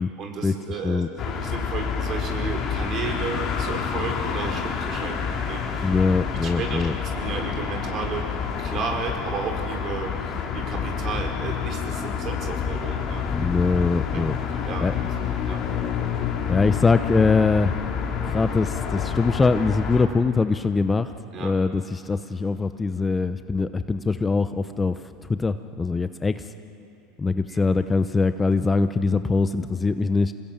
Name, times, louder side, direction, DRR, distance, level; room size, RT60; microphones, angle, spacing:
voice 1, 0.2-5.9 6.4-13.3 14.7-15.1 15.4-15.6 21.3-21.5 27.5-27.7, right 5 dB, 45° right, 2 dB, 5.4 m, -33 dB
sound 1, 1.2-20.1, left 7 dB, 40° left, 3.5 m, -28 dB
voice 2, 5.8-7.0 13.3-14.4 14.8-14.9 16.5-17.7 18.3-21.1 21.4-25.0 25.3-26.4 27.2-30.3, left 4 dB, 20° left, 10 dB, 0.9 m, -22 dB
26.5 x 20.5 x 9.0 m, 3.0 s
hypercardioid pair, 95°, 0 cm